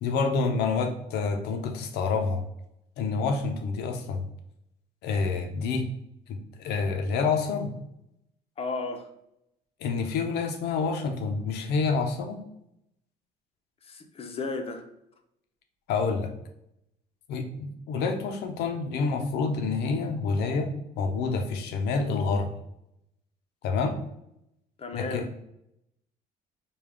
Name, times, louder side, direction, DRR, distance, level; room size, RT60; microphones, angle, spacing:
voice 1, 0.0-2.4 3.0-4.3 5.0-5.9 6.3-7.7 9.8-12.4 15.9-16.3 17.3-22.5 23.6-24.0 24.9-25.3, left 4 dB, 85° left, 5 dB, 0.7 m, -28 dB
voice 2, 8.6-9.1 13.8-14.9 24.8-25.3, left 3 dB, 35° left, 6 dB, 0.6 m, -34 dB
5.0 x 2.3 x 3.5 m, 0.81 s
cardioid pair, 110°, 17 cm